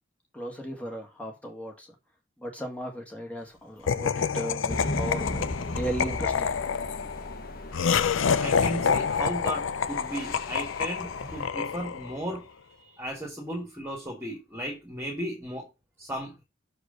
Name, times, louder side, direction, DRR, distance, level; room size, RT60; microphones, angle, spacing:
voice 1, 0.3-1.9 2.4-6.5, equal, 5° left, 1.9 m, -36 dB
Laughter, 3.9-12.2, left 6 dB, 75° left, 0.5 m, -28 dB
sound 1, 4.7-11.5, left 1 dB, 45° left, 1.1 m, -37 dB
voice 2, 8.4-12.5 12.9-15.7 16.0-16.3, equal, 10° right, 2.0 m, -35 dB
6.7 x 4.8 x 5.3 m
head